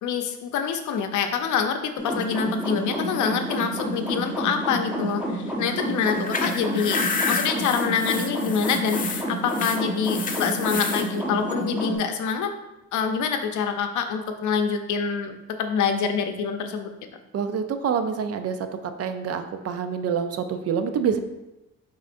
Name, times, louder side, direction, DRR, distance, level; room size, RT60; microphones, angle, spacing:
voice 1, 0.0-1.8 2.0-7.0 7.3-12.5 12.9-16.9, left 6 dB, 75° left, 6 dB, 0.6 m, -26 dB
sound 1, 2.0-12.0, right 1 dB, 5° right, 1.2 m, -29 dB
sound 2, 6.0-11.1, left 5 dB, 30° left, 0.4 m, -30 dB
voice 2, 17.3-18.6 19.0-21.2, right 7 dB, 55° right, 8 dB, 0.5 m, -26 dB
5.2 x 3.7 x 2.5 m, 0.98 s
cardioid pair, 90°, 30 cm